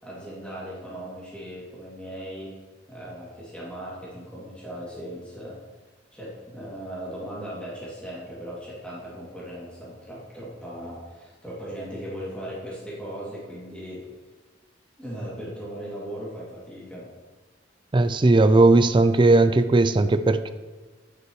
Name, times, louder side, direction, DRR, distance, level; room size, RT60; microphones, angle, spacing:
voice 1, 0.0-2.6 2.9-5.6 6.1-14.0 15.0-17.1, equal, 5° left, -8 dB, 2.5 m, -38 dB
voice 2, 17.9-20.5, right 2 dB, 25° right, 11 dB, 0.4 m, -17 dB
11.5 x 9.4 x 3.1 m, 1.3 s
head